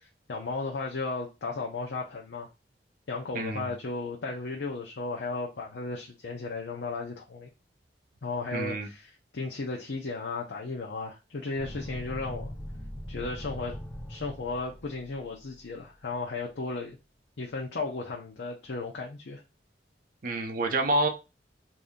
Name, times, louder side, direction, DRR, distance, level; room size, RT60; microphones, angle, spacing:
voice 1, 0.3-2.5 3.1-7.5 8.2-12.5 13.1-13.8 14.1-17.0 17.4-19.4, left 3 dB, 85° left, -1 dB, 0.6 m, -35 dB
voice 2, 3.3-3.7 8.5-8.9 20.2-21.1, right 2 dB, 50° right, 5 dB, 0.5 m, -28 dB
sound 1, 11.5-15.6, equal, 10° left, 0.6 m, -41 dB
2.6 x 2.6 x 3.5 m, 0.27 s
head